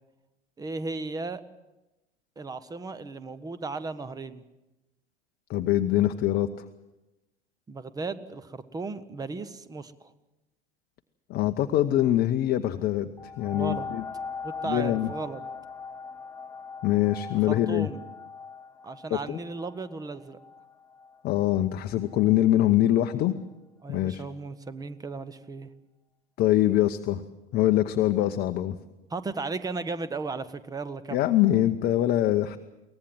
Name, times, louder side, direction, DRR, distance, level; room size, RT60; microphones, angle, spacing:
voice 1, 0.6-1.4 2.4-4.4 7.7-10.1 13.5-13.9 14.4-15.4 17.3-18.0 18.8-20.4 23.8-25.7 29.1-31.2, right 3 dB, 10° right, 14 dB, 0.9 m, -35 dB
voice 2, 5.5-6.5 11.3-13.1 13.4-14.0 14.7-15.1 16.8-17.9 19.3-19.4 21.2-23.3 23.9-24.2 26.4-27.2 27.5-28.8 31.1-32.6, left 13 dB, 30° left, 7 dB, 0.8 m, -23 dB
sound 1, 13.2-22.4 23.1-23.2, left 5 dB, 5° left, 1.2 m, -41 dB
23.0 x 18.5 x 7.5 m, 1.0 s
figure-of-eight pair, 90°, 34 cm